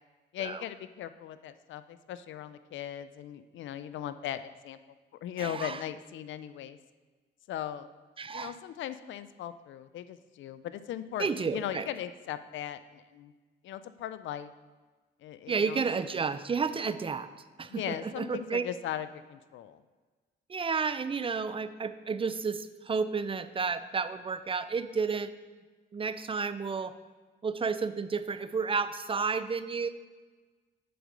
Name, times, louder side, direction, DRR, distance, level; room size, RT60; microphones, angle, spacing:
voice 1, 0.3-4.8 5.2-6.8 7.5-7.9 8.3-13.3 13.6-14.5 15.2-15.8 17.7-19.8, left 10 dB, 75° left, 12 dB, 0.5 m, -38 dB
voice 2, 5.4-5.8 8.2-8.6 11.2-11.9 15.5-17.3 17.6-18.6 20.5-25.3 25.9-26.9 27.4-29.9, right 5 dB, 25° right, 13 dB, 0.4 m, -31 dB
7.8 x 5.0 x 6.6 m, 1.3 s
cardioid pair, 90°, 20 cm